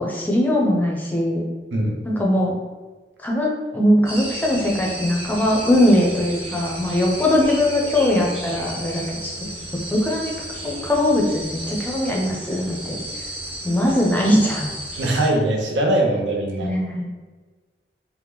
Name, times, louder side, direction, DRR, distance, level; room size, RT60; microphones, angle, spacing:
voice 1, 0.0-1.4 2.0-2.6 3.2-9.3 9.9-10.3 10.6-13.0 13.6-14.7 16.6-17.0, left 1 dB, 10° left, -2 dB, 0.4 m, -20 dB
voice 2, 1.7-2.0 15.0-16.7, right 1 dB, 85° right, 0 dB, 0.6 m, -21 dB
sound 1, 4.1-15.3, right 1 dB, 30° right, 0.6 m, -33 dB
2.8 x 2.1 x 3.4 m, 1.3 s
head